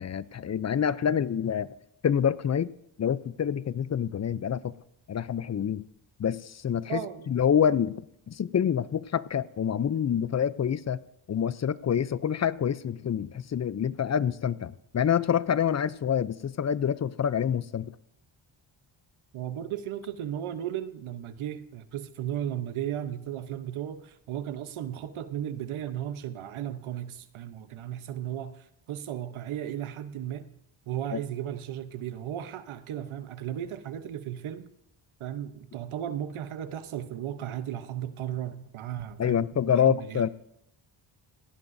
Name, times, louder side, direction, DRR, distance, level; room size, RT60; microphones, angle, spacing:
voice 1, 0.0-1.7 2.0-2.7 3.0-4.7 5.1-5.9 6.2-7.0 7.3-11.0 11.3-17.9 31.1-31.2 39.2-40.3, left 8 dB, 35° left, 0.5 m, -27 dB
voice 2, 6.9-7.4 19.3-30.5 30.9-34.7 35.2-40.3, right 11 dB, 80° right, 0.9 m, -35 dB
17.5 x 16.0 x 2.6 m
cardioid pair, 80°, 48 cm